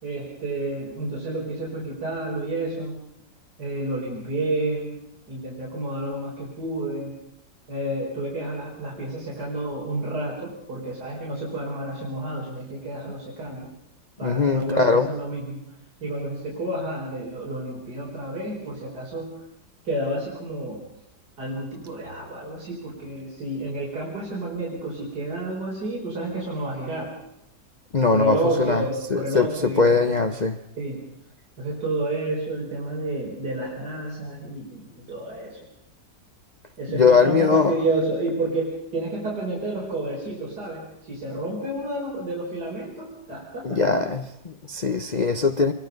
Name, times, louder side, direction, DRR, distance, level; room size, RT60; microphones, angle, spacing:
voice 1, 0.0-3.0 3.6-5.0 5.3-7.2 7.7-13.7 14.2-15.6 16.0-19.3 19.9-20.9 21.4-27.1 28.1-30.3 30.8-31.0 31.6-35.6 36.8-44.0, right 2 dB, 70° right, 5.4 m, -30 dB
voice 2, 14.2-15.1 27.9-28.8 29.1-30.6 36.9-37.7 43.6-45.7, left 4 dB, 35° left, 0.8 m, -21 dB
26.5 x 23.0 x 5.4 m
omnidirectional pair, 1.8 m